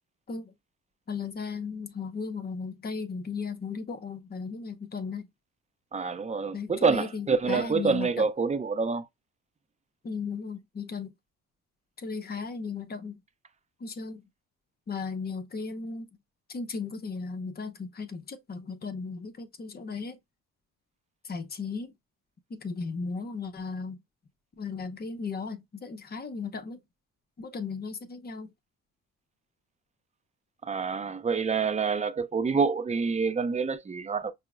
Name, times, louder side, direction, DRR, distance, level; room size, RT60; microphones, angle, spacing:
voice 1, 1.1-5.3 6.5-8.3 10.0-11.1 12.0-13.2 13.8-14.2 14.9-16.1 16.5-20.2 21.2-21.9 22.5-24.0 24.6-26.8 27.4-28.5, left 5 dB, 30° left, 0.7 m, -36 dB
voice 2, 5.9-9.1 30.6-34.3, right 5 dB, 25° right, 0.5 m, -27 dB
5.4 x 2.0 x 2.4 m
cardioid pair, 90°, 30 cm